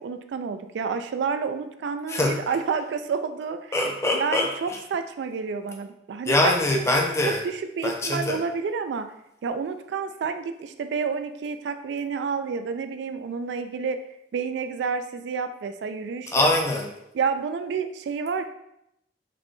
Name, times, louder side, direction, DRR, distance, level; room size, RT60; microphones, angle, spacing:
voice 1, 0.0-3.8 4.1-6.8 7.2-9.1 9.4-14.0 14.3-16.5 17.1-18.4, right 5 dB, 70° right, 9 dB, 0.3 m, -29 dB
voice 2, 3.7-4.5 6.3-7.4 7.8-8.4 16.3-16.9, left 2 dB, 15° left, 1 dB, 0.4 m, -23 dB
4.9 x 2.2 x 3.0 m, 0.81 s
head